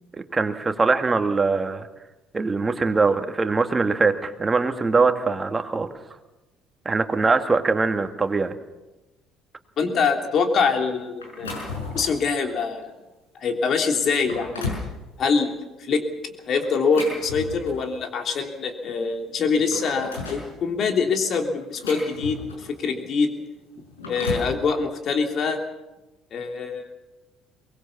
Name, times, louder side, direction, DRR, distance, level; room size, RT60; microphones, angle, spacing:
voice 1, 0.2-1.9 2.3-5.9 6.9-8.5, right 4 dB, 25° right, 7 dB, 2.0 m, -22 dB
voice 2, 9.8-11.5 11.9-12.9 13.3-14.7 15.2-15.5 15.8-23.3 24.1-25.6 26.3-26.9, left 5 dB, 50° left, 4 dB, 3.3 m, -24 dB
sound 1, 11.2-12.2 12.8-13.0 13.6-13.7 14.1-14.9 16.6-18.0 19.0-19.1 19.4-20.5 21.3-22.8 23.8-24.6, left 3 dB, 90° left, 6.1 m, -33 dB
23.0 x 20.5 x 7.2 m, 1.1 s
hypercardioid pair, 55°, 0 cm